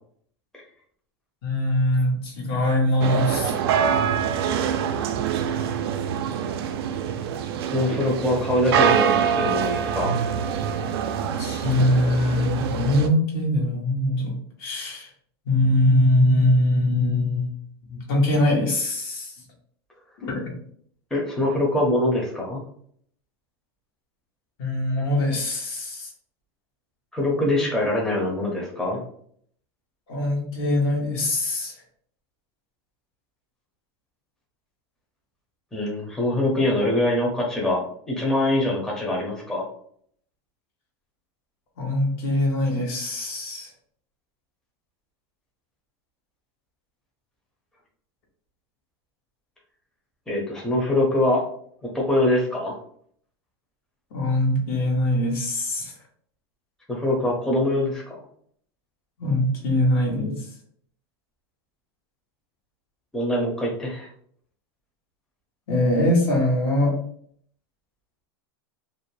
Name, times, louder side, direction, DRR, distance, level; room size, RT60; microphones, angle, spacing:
voice 1, 1.4-3.5 11.4-14.3 14.6-15.1 15.5-17.5 17.9-19.3 20.2-20.5 24.6-26.1 30.1-31.7 41.8-43.7 54.1-55.9 59.2-60.5 65.7-66.9, left 1 dB, 65° left, -1 dB, 1.1 m, -22 dB
sound 1, 3.0-13.1, right 8 dB, 75° right, 0.4 m, -25 dB
voice 2, 7.6-10.2 21.1-22.6 27.1-29.0 35.7-37.8 38.1-39.6 50.3-51.4 51.9-52.8 56.9-58.2 63.1-64.1, left 1 dB, 5° left, -3 dB, 0.6 m, -23 dB
2.5 x 2.1 x 3.1 m, 0.63 s
supercardioid pair, 125°, 13 cm